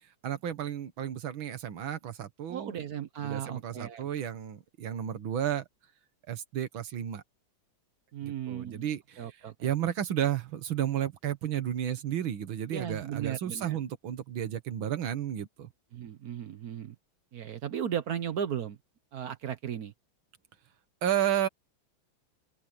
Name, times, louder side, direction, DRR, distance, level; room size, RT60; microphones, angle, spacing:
voice 1, 0.2-2.8 3.2-5.6 6.3-7.2 8.2-9.3 9.6-15.7 21.0-21.5, right 10 dB, 80° right, 2.1 m, -32 dB
voice 2, 2.5-4.1 8.1-8.9 9.2-9.7 12.7-13.8 15.9-17.0 17.3-18.8 19.1-19.9, right 9 dB, 60° right, 1.2 m, -36 dB
open air
omnidirectional pair, 2.2 m